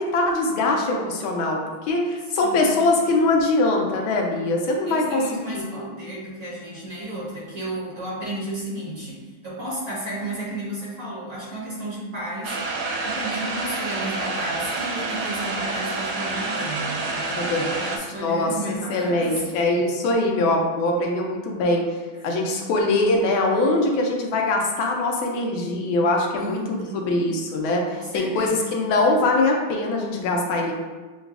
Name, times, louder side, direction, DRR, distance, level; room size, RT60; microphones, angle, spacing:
voice 1, 0.0-5.6 17.3-17.9 18.2-21.9 22.2-30.7, left 2 dB, 80° left, 0 dB, 1.4 m, -22 dB
voice 2, 2.4-2.7 4.9-19.4 19.7-19.8 21.5-21.6 26.3-27.3 27.9-28.8, right 1 dB, 45° right, -8 dB, 1.5 m, -33 dB
sound 1, 12.4-18.0, right 3 dB, 75° right, 0.9 m, -28 dB
6.9 x 2.3 x 2.3 m, 1.3 s
omnidirectional pair, 2.2 m